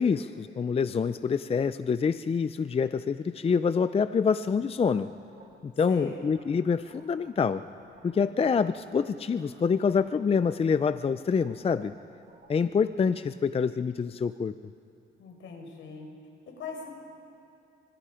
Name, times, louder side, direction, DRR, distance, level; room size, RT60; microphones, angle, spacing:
voice 1, 0.0-5.1 5.6-7.6 8.0-11.9 12.5-14.6, left 6 dB, 30° left, 13 dB, 0.5 m, -26 dB
sound 1, 4.6-8.2 8.5-9.6 9.9-13.2, right 4 dB, 50° right, 7.8 m, -55 dB
voice 2, 5.9-6.3 15.2-16.1 16.5-16.9, left 4 dB, 75° left, 2 dB, 5.1 m, -40 dB
26.5 x 25.0 x 5.1 m, 2.5 s
cardioid pair, 90°, 20 cm